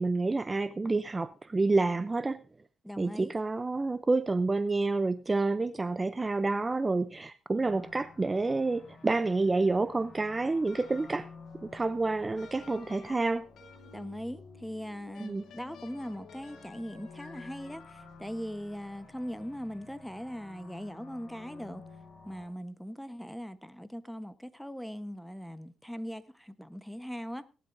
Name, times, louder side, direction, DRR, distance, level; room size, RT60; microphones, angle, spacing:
voice 1, 0.0-2.4 3.0-11.3 11.6-13.4 15.2-15.4, right 3 dB, 20° right, 0.5 m, -29 dB
voice 2, 2.8-3.3 13.9-21.8 22.2-27.4, equal, ahead, 1.0 m, -40 dB
sound 1, 7.6-22.5, left 4 dB, 40° left, 6.9 m, -52 dB
sound 2, 10.7-11.4 12.4-14.2 15.1-18.3, left 5 dB, 70° left, 2.5 m, -54 dB
18.5 x 12.0 x 2.6 m
cardioid pair, 90°, 0 cm